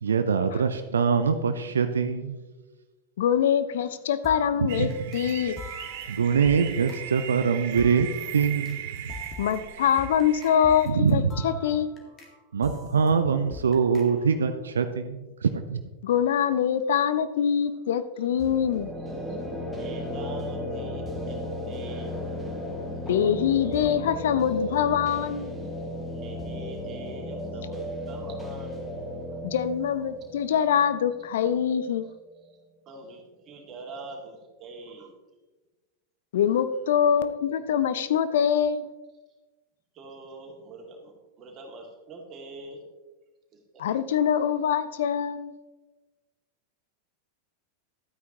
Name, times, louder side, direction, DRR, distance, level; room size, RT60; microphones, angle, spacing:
voice 1, 0.0-2.4 4.8-4.9 6.1-8.8 10.9-11.4 12.5-15.8, right 6 dB, 70° right, 9 dB, 0.5 m, -24 dB
voice 2, 3.2-5.6 9.4-11.9 16.0-18.9 23.0-25.4 29.4-32.0 36.3-38.9 43.8-45.5, left 8 dB, 60° left, 13 dB, 0.5 m, -24 dB
sound 1, 4.2-5.3 5.6-8.8 9.1-12.3 12.6-14.3, left 3 dB, 25° left, 1.9 m, -44 dB
sound 2, 4.7-10.9, right 10 dB, 50° right, 0.9 m, -38 dB
sound 3, 18.4-32.1, left 1 dB, 5° left, 1.8 m, -35 dB
voice 3, 19.6-21.4 21.6-22.2 26.1-28.8 32.9-35.1 39.9-41.1 41.4-42.8 43.7-43.8, right 2 dB, 30° right, 0 dB, 2.4 m, -43 dB
12.5 x 9.2 x 3.0 m, 1.2 s
figure-of-eight pair, 90°, 0 cm